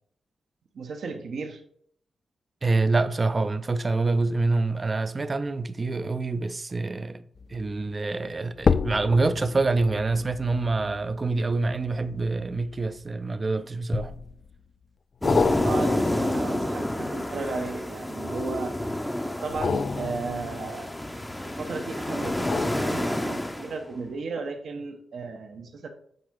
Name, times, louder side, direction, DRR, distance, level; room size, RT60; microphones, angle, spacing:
voice 1, 0.7-1.6 15.6-18.7 19.4-20.9 21.6-25.9, right 4 dB, 70° right, 1.0 m, -35 dB
voice 2, 2.6-7.2 7.5-14.2, right 3 dB, 30° right, 0.5 m, -26 dB
sound 1, 7.4-7.7 8.6-13.2 13.9-14.5 15.2-18.2 19.4-21.5 22.2-23.7 24.1-24.2, left 5 dB, 50° left, 0.3 m, -31 dB
sound 2, 15.2-23.7, left 1 dB, 10° left, 0.6 m, -29 dB
7.9 x 4.7 x 3.7 m
cardioid pair, 95°, 0 cm